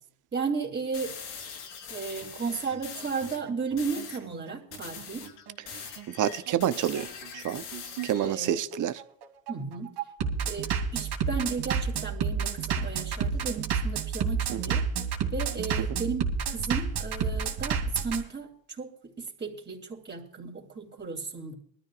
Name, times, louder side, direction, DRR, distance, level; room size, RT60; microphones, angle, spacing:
voice 1, 0.3-1.2 1.9-5.3 8.3-8.6 9.5-9.9 10.4-14.8 15.3-18.5 18.8-21.5, right 5 dB, 25° right, 3.4 m, -34 dB
sound 1, 0.9-3.4 3.8-4.2 4.7-8.4, left 7 dB, 90° left, 4.7 m, -42 dB
Bass drum, 2.2-18.2, right 6 dB, 60° right, 2.9 m, -30 dB
voice 2, 6.1-7.6 8.0-9.0 14.5-14.6, right 11 dB, 40° right, 0.9 m, -28 dB
21.0 x 13.0 x 2.5 m
supercardioid pair, 100°, 45 cm